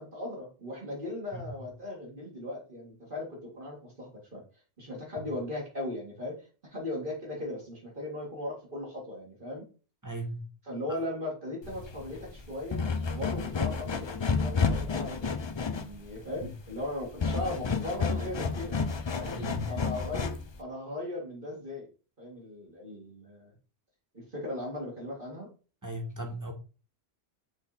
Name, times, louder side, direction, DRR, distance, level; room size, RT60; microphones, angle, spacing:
voice 1, 0.0-4.4 4.8-6.4 6.7-9.7 10.6-15.3 15.6-18.8 19.1-19.4 19.7-21.9 22.2-23.5 24.1-25.5, left 1 dB, 50° right, 2.2 m, -38 dB
voice 2, 10.0-10.5 19.2-19.8 25.8-26.5, right 1 dB, 15° right, 1.1 m, -37 dB
sound 1, 11.6-20.6, left 5 dB, 45° left, 0.3 m, -31 dB
6.4 x 3.7 x 4.1 m
omnidirectional pair, 1.1 m